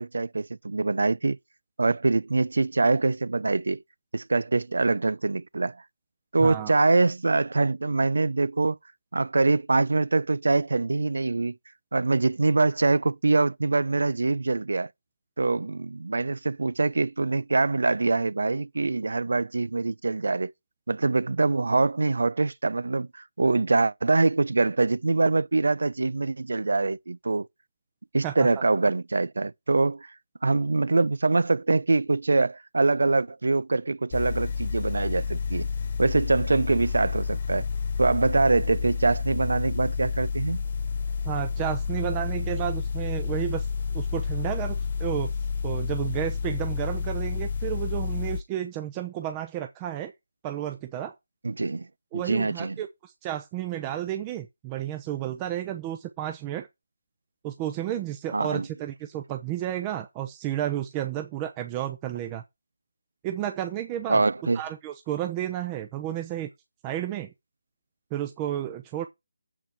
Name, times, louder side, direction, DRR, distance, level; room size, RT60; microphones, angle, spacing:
voice 1, 0.0-1.4 1.8-3.8 4.1-5.8 6.3-8.8 9.1-11.6 11.9-14.9 15.4-20.5 20.9-27.5 28.1-30.1 30.4-35.7 36.0-37.7 38.0-40.6 51.4-51.9 52.1-52.8 58.3-58.7 64.1-64.6, right 3 dB, 75° right, 0.6 m, -24 dB
voice 2, 6.4-6.7 28.2-28.5 41.2-43.7 43.9-45.3 45.6-50.1 50.4-51.1 52.1-56.7 57.4-62.4 63.2-64.2 64.5-66.5 66.8-67.3 68.1-69.1, right 12 dB, 15° right, 0.8 m, -32 dB
sound 1, 34.1-48.4, left 5 dB, 40° left, 0.8 m, -30 dB
7.7 x 4.9 x 7.1 m
figure-of-eight pair, 160°, 0 cm